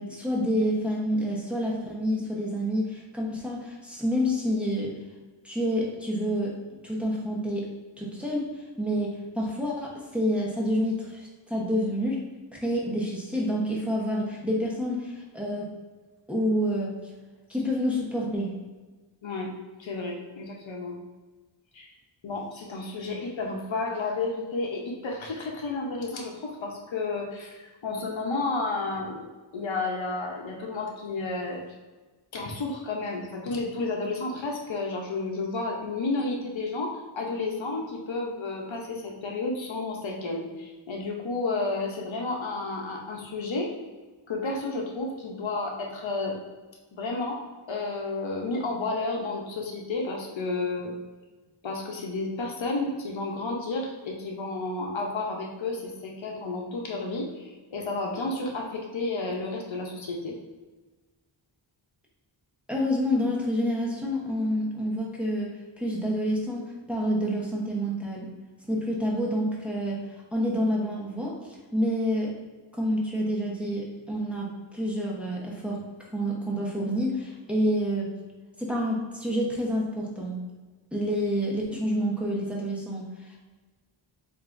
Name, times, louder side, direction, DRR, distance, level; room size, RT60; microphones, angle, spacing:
voice 1, 0.0-4.9 5.4-6.6 6.8-7.7 8.0-12.2 12.5-15.7 16.3-17.1 17.5-18.5 62.7-65.5 65.8-68.3 68.7-70.0 70.3-71.4 71.7-72.3 72.7-75.8 76.1-78.1 78.6-80.4 80.9-83.4, equal, 5° right, -4 dB, 1.0 m, -28 dB
voice 2, 19.2-19.5 19.8-21.0 21.7-21.9 22.2-31.6 32.3-43.7 44.3-46.4 46.9-47.4 47.7-50.9 51.6-60.4, left 3 dB, 70° left, 0 dB, 0.8 m, -31 dB
7.7 x 2.6 x 2.5 m, 1.3 s
wide cardioid pair, 115°, 48 cm